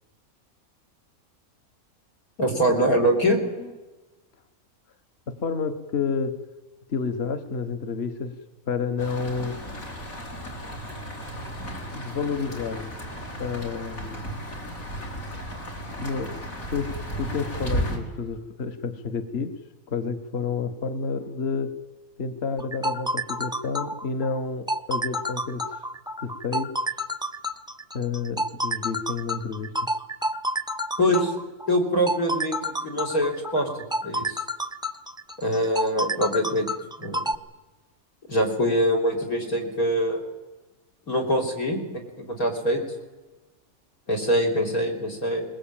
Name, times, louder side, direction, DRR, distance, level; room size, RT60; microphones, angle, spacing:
voice 1, 2.4-3.4 31.0-31.3 31.7-34.4 35.4-36.7 37.0-37.2 38.3-40.2 41.1-41.8 42.2-42.8 44.1-45.5, equal, 85° left, 4 dB, 4.4 m, -24 dB
voice 2, 5.3-6.3 6.9-8.4 8.7-9.6 11.9-12.9 13.4-14.2 16.0-16.4 16.7-16.9 17.2-19.5 19.9-21.7 22.2-25.6 26.2-26.7 27.9-29.8, left 5 dB, 50° left, 9 dB, 1.3 m, -29 dB
sound 1, 9.0-18.0, equal, 70° left, 4.2 m, -34 dB
sound 2, 22.6-37.3, equal, 5° right, 0.7 m, -29 dB
20.5 x 20.5 x 8.8 m, 1.2 s
omnidirectional pair, 1.5 m